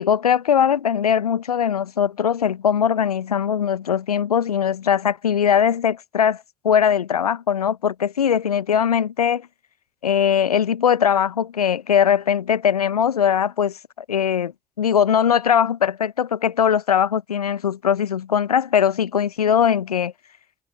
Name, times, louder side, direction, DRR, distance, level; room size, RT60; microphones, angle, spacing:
voice 1, 0.0-9.5 10.0-13.7 14.1-14.5 14.8-20.1, left 8 dB, 85° left, 1.0 m, -20 dB
figure-of-eight pair, 45°, 19 cm